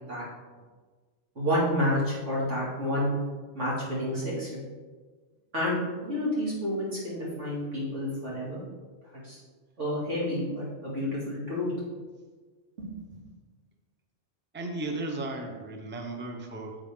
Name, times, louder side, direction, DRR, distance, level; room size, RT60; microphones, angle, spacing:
voice 1, 1.3-3.2 3.5-4.6 5.5-5.8 6.0-8.6 9.1-9.4 9.8-11.7 12.8-13.2, left 1 dB, 75° right, -7 dB, 3.2 m, -30 dB
voice 2, 14.5-16.8, right 2 dB, 10° right, 3 dB, 0.7 m, -35 dB
9.9 x 7.3 x 3.8 m, 1.4 s
omnidirectional pair, 1.3 m